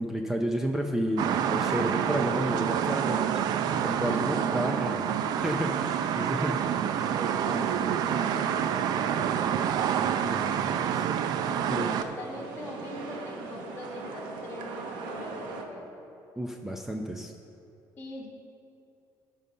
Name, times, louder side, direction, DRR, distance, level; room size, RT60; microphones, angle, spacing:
voice 1, 0.0-3.4 3.7-5.1 5.4-6.6 6.9-7.1 7.5-7.8 10.2-11.1 11.7-11.9 16.4-17.3, equal, 5° right, 3 dB, 0.5 m, -31 dB
sound 1, 1.2-12.0, right 9 dB, 60° right, 0.5 m, -27 dB
voice 2, 7.0-9.8 11.4-14.7 15.0-15.9 18.0-18.3, left 2 dB, 25° left, -1 dB, 1.6 m, -42 dB
sound 2, 10.3-15.6, right 3 dB, 85° right, 1.1 m, -41 dB
13.5 x 5.5 x 5.5 m, 2.7 s
cardioid pair, 135°, 8 cm